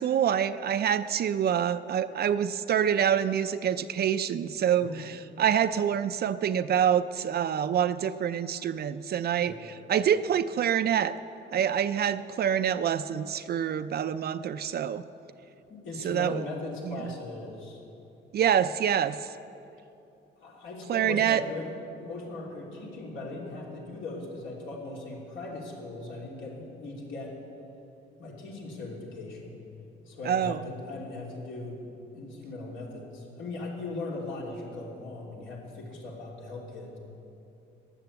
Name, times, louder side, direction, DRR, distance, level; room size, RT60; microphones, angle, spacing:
voice 1, 0.0-11.1 11.5-15.0 16.0-16.4 16.8-17.1 18.3-19.3 20.9-21.4 30.2-30.6, right 9 dB, 55° right, 11 dB, 0.5 m, -26 dB
voice 2, 15.7-17.8 20.4-27.4 28.2-29.6 30.1-37.0, left 2 dB, 75° left, -2 dB, 3.1 m, -39 dB
13.0 x 10.5 x 8.1 m, 2.8 s
cardioid pair, 90°, 20 cm